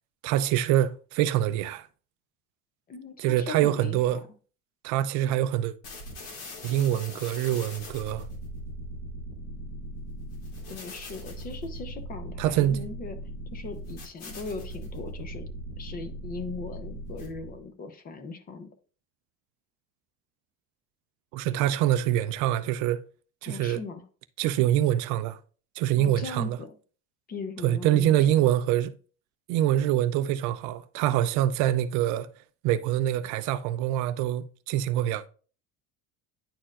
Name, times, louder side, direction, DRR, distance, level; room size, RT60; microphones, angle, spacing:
voice 1, 0.2-1.9 3.2-4.2 4.8-5.7 6.6-8.3 12.4-12.8 21.3-23.0 23.4-23.8 24.4-25.4 25.8-26.6 27.6-28.9 29.5-32.3 32.6-35.2, right 12 dB, 55° right, 0.4 m, -25 dB
voice 2, 2.9-4.2 10.7-13.2 13.5-15.5 15.8-18.7 23.4-24.0 26.0-26.7 27.3-28.5, left 4 dB, 25° left, 0.7 m, -39 dB
sound 1, 5.8-17.6, right 1 dB, 80° left, 2.5 m, -40 dB
10.0 x 4.3 x 2.4 m
cardioid pair, 170°, 36 cm